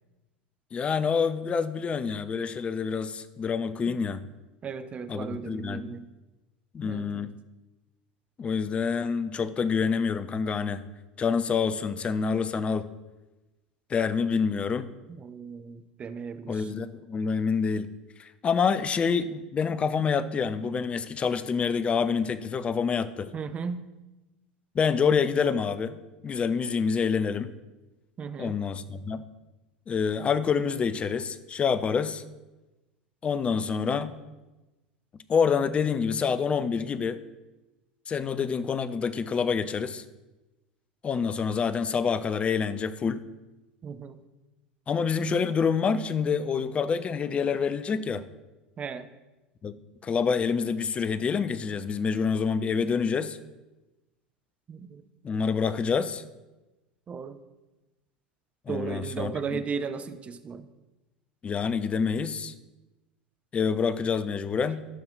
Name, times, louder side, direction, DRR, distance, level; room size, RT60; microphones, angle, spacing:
voice 1, 0.7-4.2 5.1-6.0 6.7-7.3 8.4-10.8 11.2-12.9 13.9-14.9 16.5-17.9 18.2-23.3 24.7-26.0 26.2-27.5 28.4-29.2 29.9-32.2 33.2-34.1 35.3-37.2 38.1-40.0 41.0-43.2 44.9-48.2 49.6-49.7 50.0-53.4 55.2-56.2 58.7-59.6 61.4-62.5 63.5-64.8, left 6 dB, 25° left, 13 dB, 0.6 m, -27 dB
voice 2, 4.6-6.0 6.8-7.3 15.2-16.7 23.3-23.8 28.2-28.5 43.8-44.2 48.8-49.1 54.7-55.0 57.1-57.4 58.7-60.7, right 6 dB, 30° right, 11 dB, 0.7 m, -36 dB
14.5 x 6.0 x 3.9 m, 1.1 s
figure-of-eight pair, 80°, 5 cm